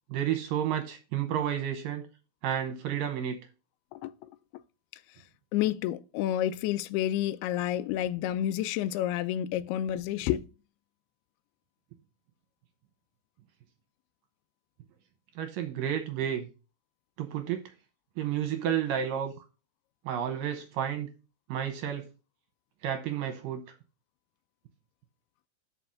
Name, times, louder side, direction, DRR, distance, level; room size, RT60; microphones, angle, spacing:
voice 1, 0.1-2.0 2.4-3.4 15.4-16.5 17.2-17.6 18.2-19.3 20.1-21.1 21.5-22.1 22.8-23.6, right 9 dB, 75° right, 2.1 m, -31 dB
voice 2, 3.9-4.3 5.5-10.5, left 12 dB, 85° left, 2.3 m, -30 dB
5.9 x 5.5 x 6.3 m
omnidirectional pair, 4.9 m